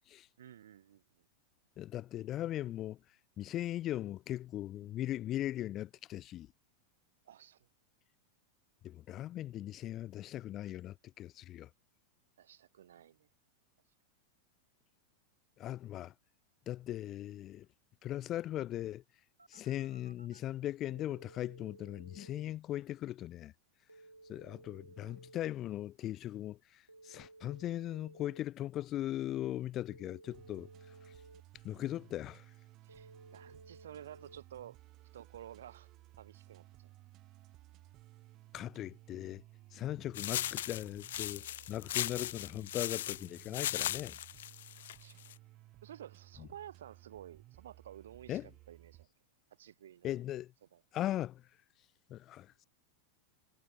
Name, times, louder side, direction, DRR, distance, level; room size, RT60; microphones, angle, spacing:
voice 1, 0.4-1.2 7.2-7.7 12.4-13.3 32.8-34.8 35.1-35.9 36.2-36.9 44.9-45.2 45.8-49.1 49.5-50.2 50.7-50.8, right 10 dB, 60° right, 3.0 m, -52 dB
voice 2, 1.8-3.0 3.4-6.5 8.8-11.7 15.6-16.1 16.7-17.7 18.0-19.0 19.5-23.5 24.3-30.7 31.6-32.4 38.5-39.4 39.7-44.2 48.3-48.5 50.0-50.5 50.9-51.4 52.1-52.7, left 13 dB, 30° left, 0.4 m, -39 dB
Telephone, 19.4-20.4 20.9-22.4 23.9-25.4 26.9-28.4 29.9-31.4 32.9-34.4, right 2 dB, 85° right, 4.2 m, -57 dB
sound 1, 30.3-49.1, right 17 dB, 35° right, 7.1 m, -58 dB
sound 2, 40.1-45.3, left 13 dB, 60° left, 1.7 m, -38 dB
figure-of-eight pair, 90°, 0 cm